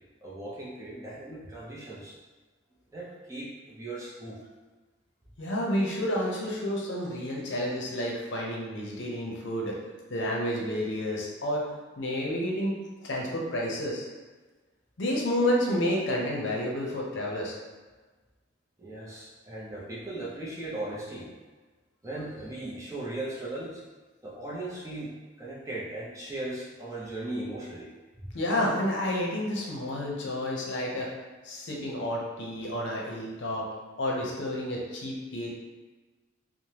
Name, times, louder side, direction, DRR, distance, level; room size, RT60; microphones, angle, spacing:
voice 1, 0.2-2.1 2.9-4.4 5.4-5.5 18.8-21.3 22.0-23.8 24.2-27.9, right 2 dB, 15° right, -6 dB, 0.5 m, -38 dB
voice 2, 5.4-9.7 10.1-11.7 12.0-12.7 13.0-14.0 15.0-17.5 28.3-31.1 31.4-33.7 34.0-35.5, left 1 dB, 70° left, -3 dB, 0.6 m, -30 dB
3.2 x 2.0 x 2.8 m, 1.3 s
head